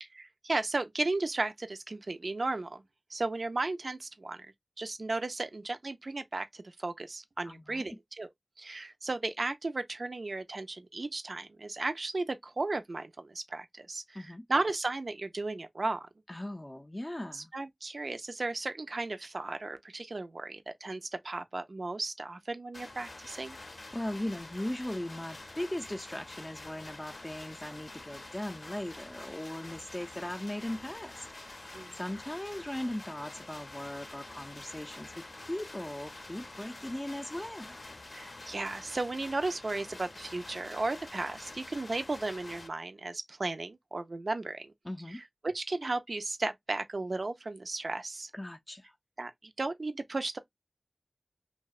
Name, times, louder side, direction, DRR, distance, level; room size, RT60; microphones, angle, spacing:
voice 1, 0.2-2.8 3.1-4.5 4.8-8.3 8.6-16.1 17.3-23.6 31.7-31.9 38.1-44.7 45.1-48.3 49.2-50.4, right 2 dB, 70° right, 0.3 m, -35 dB
voice 2, 7.4-8.0 14.1-14.4 16.3-17.5 23.9-31.3 31.9-37.8 44.8-45.2 48.3-48.9, left 1 dB, 20° left, 0.3 m, -38 dB
sound 1, 22.7-42.7, left 2 dB, 75° left, 0.5 m, -47 dB
2.7 x 2.1 x 2.3 m
wide cardioid pair, 60°, 0 cm